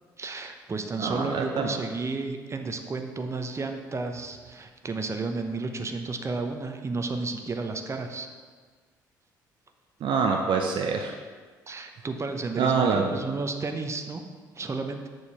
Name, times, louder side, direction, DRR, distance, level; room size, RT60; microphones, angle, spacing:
voice 1, 0.2-8.3 11.7-14.2 14.6-15.1, right 3 dB, 25° right, 5 dB, 0.9 m, -32 dB
voice 2, 1.0-1.8 10.0-11.1 12.6-13.1, right 5 dB, 50° right, 3 dB, 0.7 m, -25 dB
6.8 x 4.9 x 6.1 m, 1.5 s
figure-of-eight pair, 50°, 10 cm